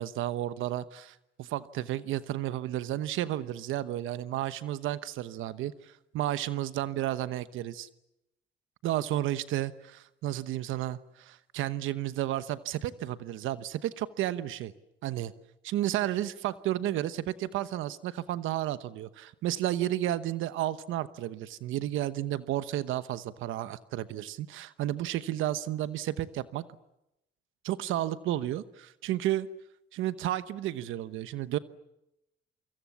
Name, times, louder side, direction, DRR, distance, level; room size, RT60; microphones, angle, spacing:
voice 1, 0.0-7.9 8.8-14.7 15.0-15.3 15.6-26.6 27.6-29.5 29.9-31.6, right 13 dB, 90° right, 14 dB, 1.0 m, -32 dB
27.5 x 25.5 x 7.2 m, 0.86 s
cardioid pair, 90°, 20 cm